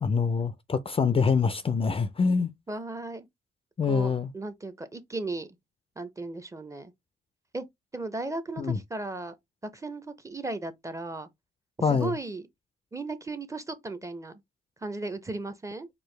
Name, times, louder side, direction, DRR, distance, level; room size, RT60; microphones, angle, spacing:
voice 1, 0.0-2.5 3.8-4.3 8.6-8.8 11.8-12.1, left 5 dB, 30° left, 0.4 m, -25 dB
voice 2, 2.7-3.3 3.9-5.6 6.0-6.9 7.5-7.7 7.9-9.4 9.6-11.3 11.9-12.5 12.9-14.4 14.8-15.9, right 2 dB, 15° right, 0.6 m, -36 dB
4.5 x 2.2 x 3.2 m
cardioid pair, 90°, 20 cm